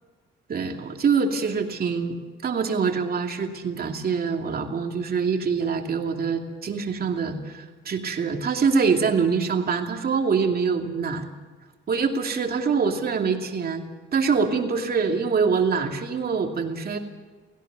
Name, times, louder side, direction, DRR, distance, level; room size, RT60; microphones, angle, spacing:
voice 1, 0.5-2.2 2.4-11.3 11.9-13.8 14.1-17.0, right 5 dB, 50° right, 3 dB, 2.7 m, -24 dB
17.5 x 16.5 x 9.7 m, 1.4 s
cardioid pair, 90°, 20 cm